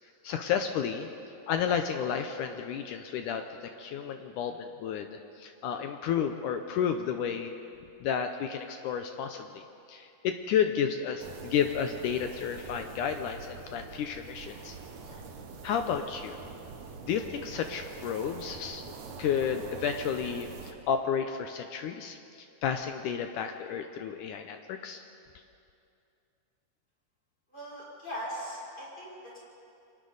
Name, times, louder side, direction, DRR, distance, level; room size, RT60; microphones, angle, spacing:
voice 1, 0.2-1.1 1.5-7.5 8.0-9.6 9.9-14.8 15.6-16.4 17.0-18.8 19.2-25.0, left 8 dB, 80° left, 6 dB, 1.8 m, -32 dB
sound 1, 11.2-20.7, right 5 dB, 60° right, 2.2 m, -45 dB
voice 2, 27.5-29.4, equal, 25° left, -7 dB, 6.7 m, -40 dB
29.0 x 23.0 x 4.0 m, 2.6 s
omnidirectional pair, 4.5 m